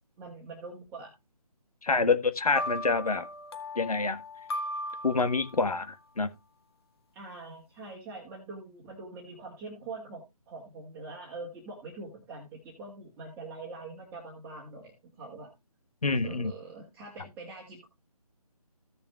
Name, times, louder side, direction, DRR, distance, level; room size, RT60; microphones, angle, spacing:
voice 1, 0.2-1.1 2.0-2.1 7.1-15.5 16.2-17.9, right 3 dB, 10° right, 2.0 m, -44 dB
voice 2, 1.8-3.3 3.8-4.2 5.0-6.3 16.0-16.5, left 4 dB, 70° left, 1.4 m, -27 dB
sound 1, 2.5-5.8, left 1 dB, 40° left, 1.3 m, -37 dB
16.0 x 7.1 x 2.3 m
figure-of-eight pair, 155°, 20 cm